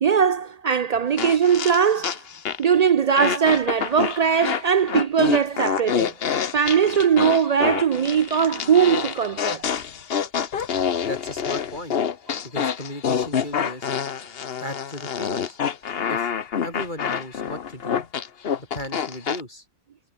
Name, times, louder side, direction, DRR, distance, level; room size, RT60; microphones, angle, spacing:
voice 1, 0.0-2.2 2.6-6.1 6.5-9.6, right 7 dB, 85° right, 0.3 m, -20 dB
sound 1, 1.2-2.8 3.2-19.4, left 7 dB, 50° left, 1.1 m, -27 dB
voice 2, 10.7-12.0 12.4-13.9 14.6-15.6 16.1-16.3 16.6-18.0 18.6-19.6, left 1 dB, 35° left, 7.3 m, -36 dB
omnidirectional pair, 1.3 m